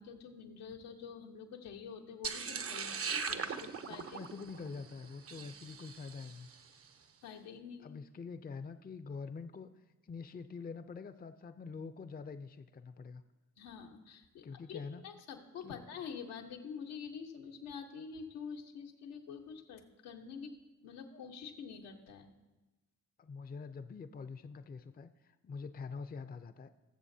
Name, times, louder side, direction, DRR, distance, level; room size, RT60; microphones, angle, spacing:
voice 1, 0.0-4.2 7.2-7.9 13.6-22.3, left 6 dB, 85° left, 1 dB, 1.2 m, -47 dB
sound 1, 2.2-6.5, right 5 dB, 35° right, 0.7 m, -40 dB
voice 2, 3.9-6.5 7.8-9.7 10.0-13.2 14.4-15.0 15.6-15.8 21.1-21.3 23.2-26.7, left 5 dB, 25° left, 11 dB, 0.6 m, -45 dB
20.5 x 7.1 x 2.8 m, 1.1 s
hypercardioid pair, 50°, 39 cm